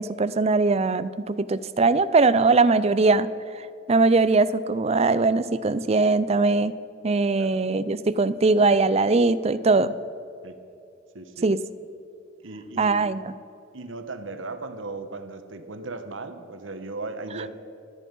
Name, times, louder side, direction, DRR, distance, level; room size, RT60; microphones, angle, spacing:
voice 1, 0.0-3.3 3.9-6.7 7.0-9.9 11.4-11.6 12.8-13.3, right 3 dB, 35° right, 14 dB, 0.5 m, -21 dB
voice 2, 11.1-11.5 12.4-13.1 13.7-17.5, right 3 dB, 85° right, 9 dB, 1.2 m, -37 dB
25.0 x 8.5 x 5.4 m, 2.6 s
head